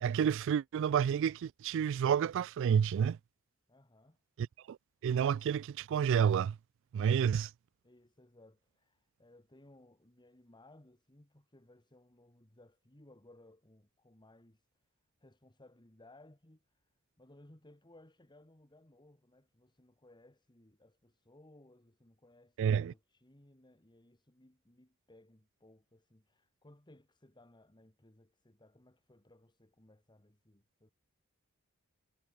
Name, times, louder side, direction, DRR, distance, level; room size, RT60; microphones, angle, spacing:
voice 1, 0.0-3.2 4.4-4.8 5.0-6.6 6.9-7.5 22.6-22.9, right 8 dB, 65° right, 0.3 m, -29 dB
voice 2, 3.7-4.2 7.0-7.3 7.8-14.6 15.2-30.9, left 1 dB, 20° left, 1.9 m, -62 dB
head